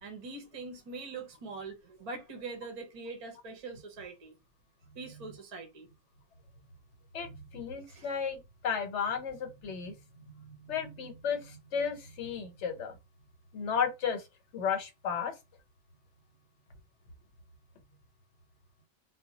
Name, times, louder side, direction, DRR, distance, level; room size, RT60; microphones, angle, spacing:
voice 1, 0.0-4.3 4.9-5.9 7.9-8.1, right 3 dB, 40° right, 0.6 m, -43 dB
voice 2, 7.1-9.9 10.3-13.0 13.5-14.3 14.5-15.3, left 7 dB, 75° left, 1.0 m, -34 dB
2.3 x 2.0 x 3.8 m
omnidirectional pair, 1.2 m